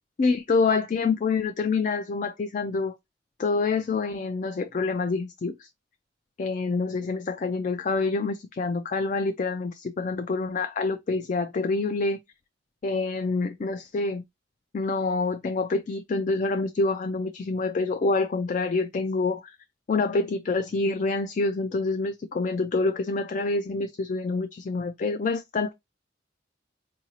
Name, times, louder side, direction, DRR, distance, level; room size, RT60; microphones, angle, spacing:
voice 1, 0.2-2.9 3.4-5.7 6.4-12.2 12.8-14.2 14.7-19.6 19.9-25.7, left 3 dB, 40° left, 0.3 m, -27 dB
4.7 x 2.6 x 2.8 m
head